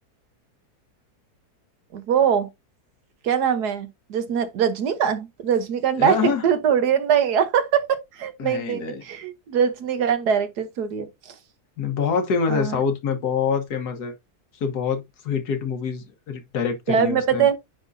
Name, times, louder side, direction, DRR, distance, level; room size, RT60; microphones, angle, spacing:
voice 1, 1.9-2.5 3.2-11.3 12.5-12.8 16.9-17.6, right 8 dB, 80° right, 1.6 m, -22 dB
voice 2, 6.0-6.4 8.4-9.0 11.8-14.1 14.6-17.5, left 6 dB, 80° left, 1.8 m, -25 dB
9.6 x 3.8 x 2.6 m
omnidirectional pair, 1.7 m